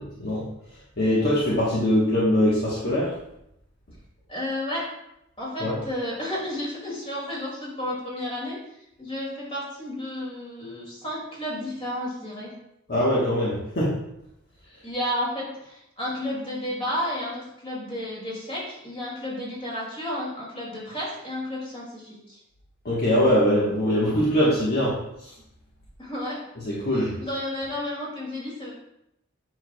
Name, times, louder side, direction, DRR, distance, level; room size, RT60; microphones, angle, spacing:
voice 1, 1.0-3.1 5.6-5.7 12.9-13.9 22.8-25.0 25.2-25.3 26.6-27.1, equal, 50° left, -6 dB, 1.3 m, -22 dB
voice 2, 4.3-4.8 5.4-8.6 9.0-12.5 14.8-22.4 26.0-26.4 27.2-28.7, left 1 dB, 30° left, -5 dB, 2.4 m, -32 dB
7.8 x 6.0 x 2.3 m, 0.82 s
head